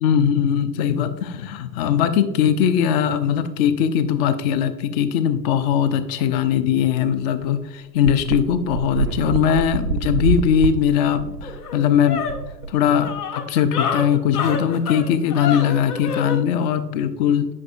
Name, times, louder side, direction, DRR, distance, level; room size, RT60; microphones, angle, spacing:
voice 1, 0.0-12.2 12.7-17.5, left 8 dB, 30° left, 11 dB, 0.4 m, -20 dB
sound 1, 7.0-7.1 7.4-7.5 8.0-13.2, right 5 dB, 90° right, 0.6 m, -26 dB
sound 2, 10.9-11.0 11.4-16.4, left 6 dB, 70° left, 0.9 m, -28 dB
8.4 x 5.4 x 2.4 m, 1.0 s
figure-of-eight pair, 90°, 49 cm